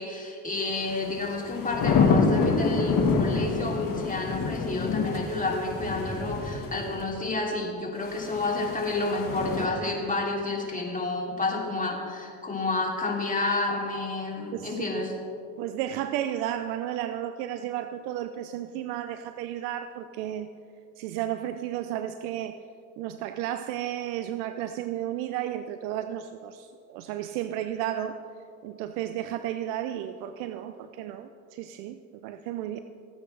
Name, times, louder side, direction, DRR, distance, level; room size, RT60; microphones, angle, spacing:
voice 1, 0.0-15.1, left 2 dB, 15° left, -1 dB, 2.9 m, -30 dB
sound 1, 0.8-7.0 8.1-9.7, left 4 dB, 45° left, 1.6 m, -27 dB
voice 2, 14.5-15.0 15.6-20.5 21.0-22.6 23.0-28.2 28.6-32.8, right 11 dB, 80° right, 10 dB, 0.6 m, -33 dB
18.0 x 8.8 x 3.3 m, 2.5 s
hypercardioid pair, 65°, 45 cm